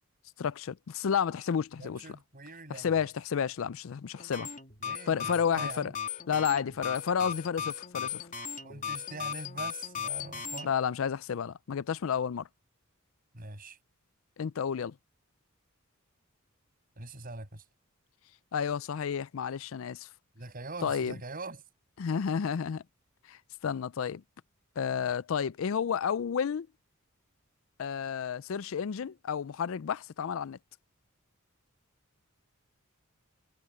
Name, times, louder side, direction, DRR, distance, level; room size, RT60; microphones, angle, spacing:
voice 1, 0.4-2.0 2.7-4.5 5.1-5.9 6.3-8.2 10.6-12.5 14.4-15.0 18.5-20.1 20.8-21.2 22.0-22.8 23.3-24.2 24.8-26.7 27.8-30.6, left 7 dB, 65° left, 0.4 m, -31 dB
voice 2, 1.8-2.9 4.8-5.9 8.6-10.7 13.3-13.8 17.0-17.6 20.3-21.6, right 3 dB, 45° right, 6.7 m, -43 dB
sound 1, 4.2-10.7, left 7 dB, 40° left, 3.1 m, -37 dB
head